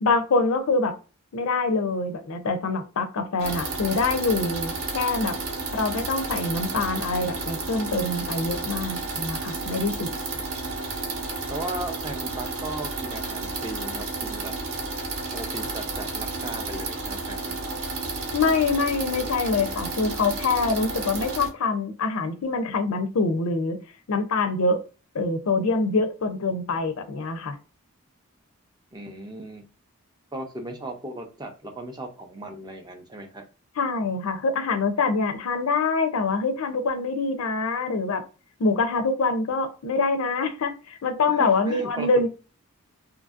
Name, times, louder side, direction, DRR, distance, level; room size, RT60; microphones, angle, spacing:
voice 1, 0.0-1.0 1.3-5.4 5.7-10.1 18.3-23.8 24.1-24.8 25.1-27.6 33.8-38.2 38.6-42.3, left 3 dB, 70° left, 9 dB, 0.4 m, -25 dB
sound 1, 3.4-21.5, right 3 dB, 65° right, 0.8 m, -32 dB
voice 2, 11.5-14.5 15.3-17.7 28.9-29.6 30.3-33.4 41.3-42.3, right 1 dB, 20° right, 4 dB, 0.4 m, -37 dB
2.7 x 2.5 x 2.4 m, 0.33 s
head